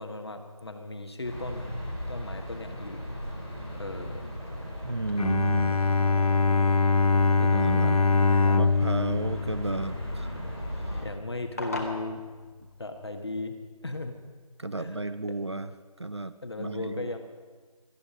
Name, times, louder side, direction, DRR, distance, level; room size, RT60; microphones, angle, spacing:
voice 1, 0.0-1.7 2.1-3.0 3.7-4.3 7.4-7.9 8.4-8.6 11.0-12.2 12.8-13.5 13.8-14.1 14.8-15.0 16.4-17.2, left 2 dB, 45° left, 6 dB, 1.5 m, -37 dB
sound 1, 1.2-11.0, equal, 5° right, 0.8 m, -37 dB
sound 2, 4.3-13.0, left 2 dB, 25° left, 1.5 m, -45 dB
voice 2, 4.6-5.8 7.4-8.0 8.5-10.4 10.7-11.0 14.6-15.7 16.0-17.2, right 2 dB, 45° right, 12 dB, 0.6 m, -33 dB
Bowed string instrument, 5.2-10.4, left 4 dB, 70° left, 0.6 m, -24 dB
17.5 x 13.0 x 5.1 m, 1.4 s
figure-of-eight pair, 170°, 19 cm